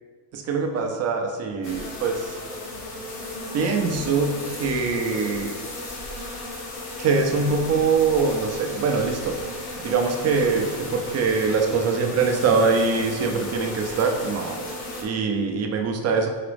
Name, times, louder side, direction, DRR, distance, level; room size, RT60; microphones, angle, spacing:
voice 1, 0.3-2.3 3.5-5.5 7.0-9.3 9.8-14.6 15.0-16.3, right 4 dB, 40° right, 3 dB, 0.5 m, -23 dB
sound 1, 1.6-15.0, left 1 dB, 65° left, 1.2 m, -35 dB
4.9 x 2.9 x 3.3 m, 1.5 s
cardioid pair, 115°, 42 cm